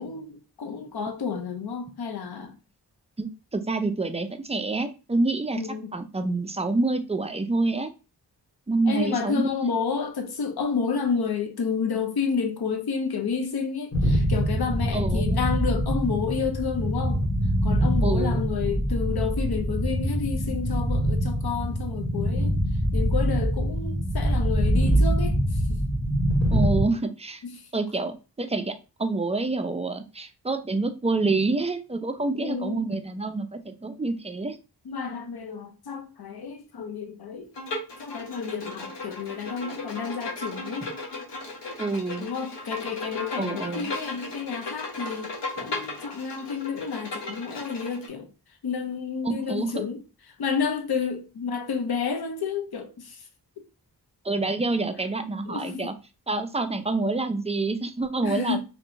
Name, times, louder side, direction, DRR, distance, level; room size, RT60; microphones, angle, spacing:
voice 1, 0.0-2.5 5.5-5.9 8.9-17.2 17.6-22.6 22.9-25.8 27.4-27.6 32.3-32.9 34.9-37.5 38.0-40.9 42.2-48.3 48.6-50.0 50.4-53.2 55.5-55.9 58.2-58.6, left 6 dB, 65° left, 0.6 m, -30 dB
voice 2, 3.2-5.6 5.9-7.9 8.7-9.7 14.9-15.3 18.0-18.4 26.5-27.4 27.7-28.7 29.0-34.6 41.8-42.3 43.4-43.9 49.2-49.8 54.2-55.9 56.3-58.6, right 3 dB, 15° right, 0.3 m, -27 dB
sound 1, 13.9-26.8, equal, 40° left, 1.2 m, -24 dB
Bowed string instrument, 37.5-48.1, left 2 dB, 85° left, 0.8 m, -36 dB
2.7 x 2.1 x 2.6 m
cardioid pair, 40°, 42 cm